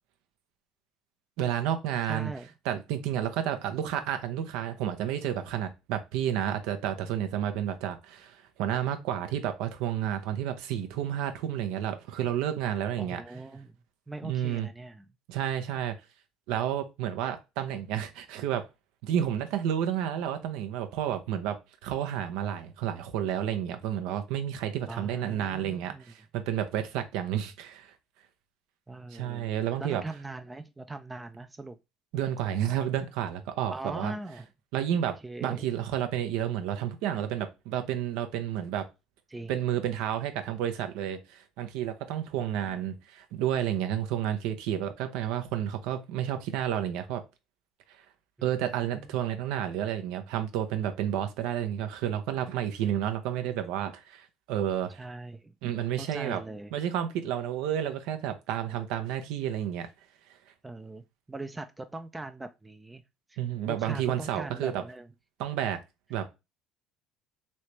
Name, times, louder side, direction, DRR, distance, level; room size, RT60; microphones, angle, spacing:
voice 1, 1.4-2.3 2.7-13.2 14.2-14.7 15.3-15.9 16.5-18.7 19.0-27.9 29.1-30.0 32.1-34.1 34.7-38.9 39.5-47.2 48.4-55.0 55.6-56.4 56.7-59.9 63.4-64.8 65.4-65.8 66.1-66.3, right 10 dB, 75° right, 0.6 m, -31 dB
voice 2, 2.1-2.5 13.0-13.7 14.1-15.1 24.9-26.0 28.9-29.5 29.8-31.8 33.7-34.5 35.2-35.7 39.3-39.5 48.7-49.1 55.0-55.5 56.0-56.8 60.6-63.0 63.3-63.4 63.7-65.1, right 2 dB, 15° right, 0.3 m, -40 dB
3.2 x 2.8 x 3.1 m
supercardioid pair, 80°, 0 cm